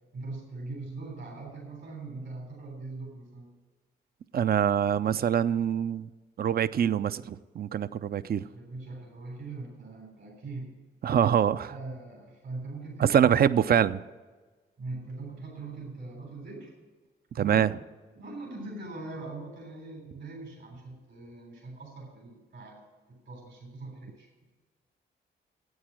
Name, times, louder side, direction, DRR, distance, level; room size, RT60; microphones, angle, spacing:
voice 1, 0.1-3.5 8.4-10.7 11.7-13.9 14.8-16.7 17.3-17.7 18.2-22.8 23.1-24.3, right 3 dB, 65° right, -1 dB, 3.6 m, -41 dB
voice 2, 4.3-6.1 6.4-8.4 11.0-11.7 13.0-14.0 17.4-17.7, right 9 dB, 50° right, 15 dB, 0.5 m, -24 dB
9.5 x 8.6 x 7.5 m, 1.3 s
cardioid pair, 55°, 20 cm